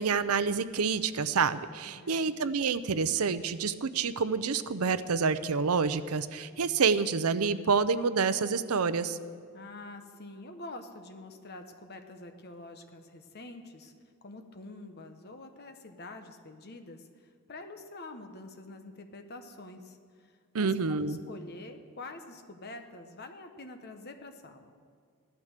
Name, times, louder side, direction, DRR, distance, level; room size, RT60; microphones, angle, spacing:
voice 1, 0.0-9.2 20.5-21.2, right 5 dB, 80° right, 14 dB, 0.6 m, -28 dB
voice 2, 1.9-2.3 9.5-13.9 14.2-24.7, left 2 dB, 45° left, 6 dB, 1.2 m, -46 dB
16.0 x 12.0 x 6.6 m, 2.1 s
head